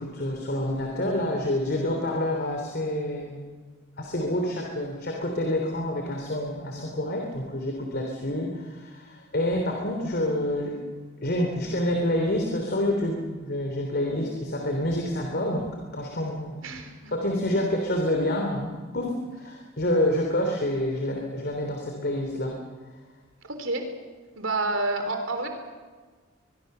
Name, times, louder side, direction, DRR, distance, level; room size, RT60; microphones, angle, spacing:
voice 1, 0.0-3.6 4.0-10.8 11.2-16.6 17.1-22.6, left 1 dB, 50° left, 2 dB, 3.3 m, -28 dB
voice 2, 16.6-17.1 23.5-23.8 24.4-25.5, right 2 dB, 70° right, 6 dB, 3.4 m, -29 dB
23.0 x 22.5 x 6.8 m, 1.4 s
head